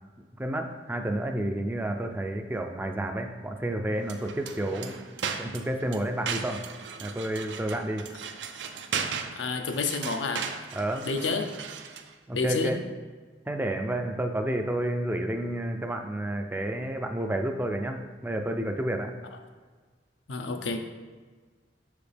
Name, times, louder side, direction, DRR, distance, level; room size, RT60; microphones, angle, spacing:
voice 1, 0.3-4.9 5.4-6.6 7.0-8.0 10.7-11.1 12.3-12.8 13.5-19.1, right 1 dB, 10° right, 5 dB, 0.3 m, -30 dB
sound 1, 4.0-12.1, right 6 dB, 75° right, 0.5 m, -37 dB
voice 2, 9.4-10.5 11.1-11.5 12.3-12.8 20.3-20.8, left 4 dB, 85° left, 6 dB, 0.6 m, -29 dB
6.4 x 4.9 x 3.4 m, 1.4 s
head